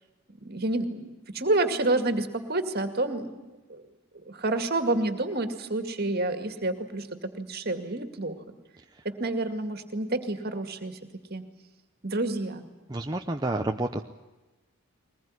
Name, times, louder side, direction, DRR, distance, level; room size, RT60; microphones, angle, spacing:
voice 1, 0.3-3.3 3.7-3.8 4.1-8.4 9.0-11.0 11.3-11.4 12.0-12.7, right 2 dB, 45° right, 8 dB, 2.3 m, -29 dB
voice 2, 12.9-14.0, right 2 dB, 20° right, 3 dB, 0.8 m, -29 dB
22.0 x 20.0 x 9.8 m, 1.1 s
head